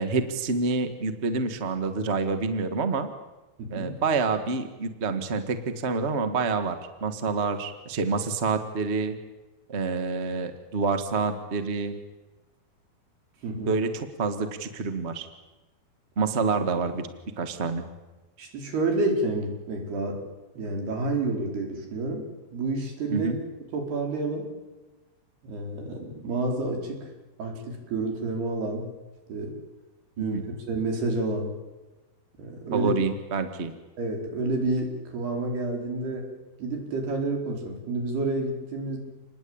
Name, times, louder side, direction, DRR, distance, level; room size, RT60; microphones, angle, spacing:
voice 1, 0.0-3.1 3.7-6.7 7.0-9.2 9.7-12.0 13.5-15.3 16.2-17.1 17.4-17.8 23.1-23.4 30.2-30.4 32.7-33.7, right 4 dB, 90° right, 8 dB, 0.5 m, -27 dB
voice 2, 3.6-3.9 13.4-13.7 18.4-20.2 20.6-22.2 22.5-23.3 23.7-24.5 25.4-27.1 27.4-28.8 29.3-29.5 30.2-30.4 30.7-31.5 32.4-32.9 34.0-36.2 36.6-39.0, right 2 dB, 70° right, 2 dB, 6.5 m, -29 dB
29.0 x 20.5 x 8.9 m, 1.1 s
omnidirectional pair, 4.8 m